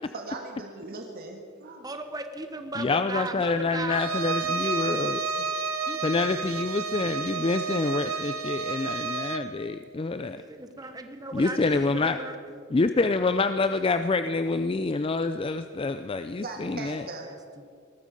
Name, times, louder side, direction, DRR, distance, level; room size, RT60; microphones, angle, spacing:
voice 1, 0.1-1.9 16.4-17.3, right 3 dB, 45° right, 2 dB, 1.6 m, -39 dB
voice 2, 1.8-4.1 5.4-5.5 5.9-6.1 10.2-12.6 17.1-17.8, right 2 dB, 20° right, 7 dB, 1.0 m, -37 dB
voice 3, 2.8-5.2 6.0-10.4 11.3-12.2 12.7-17.0, left 3 dB, 25° left, 10 dB, 0.4 m, -27 dB
Bowed string instrument, 3.9-9.5, right 4 dB, 90° right, 1.1 m, -31 dB
19.0 x 14.0 x 5.3 m, 2.2 s
head